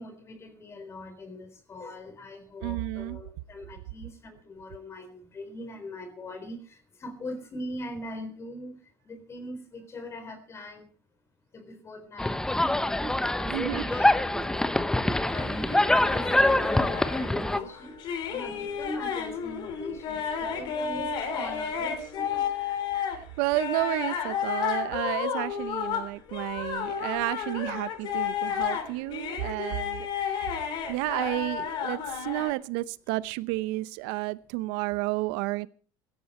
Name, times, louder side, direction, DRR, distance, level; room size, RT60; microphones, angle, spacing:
voice 1, 0.0-10.9 11.5-12.6 13.3-14.7 15.2-22.9, left 1 dB, 30° left, 10 dB, 4.0 m, -41 dB
voice 2, 2.6-3.2 13.5-13.9 22.9-30.6 30.9-35.7, right 18 dB, 75° right, 17 dB, 0.8 m, -31 dB
sound 1, 12.2-17.6, left 1 dB, 5° left, 0.9 m, -25 dB
Laughter, 13.0-16.9 17.3-17.8, right 5 dB, 25° right, 2.3 m, -42 dB
sound 2, 15.3-23.2 23.5-32.5, left 7 dB, 55° left, 3.2 m, -32 dB
16.5 x 13.5 x 4.3 m, 0.43 s
supercardioid pair, 110°, 10 cm